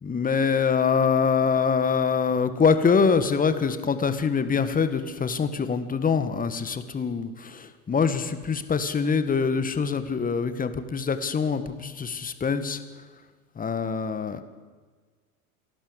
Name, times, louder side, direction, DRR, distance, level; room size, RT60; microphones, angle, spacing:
voice 1, 0.0-12.8 13.6-14.4, left 5 dB, 20° left, 11 dB, 1.7 m, -24 dB
28.0 x 11.5 x 8.2 m, 1.5 s
hypercardioid pair, 95°, 46 cm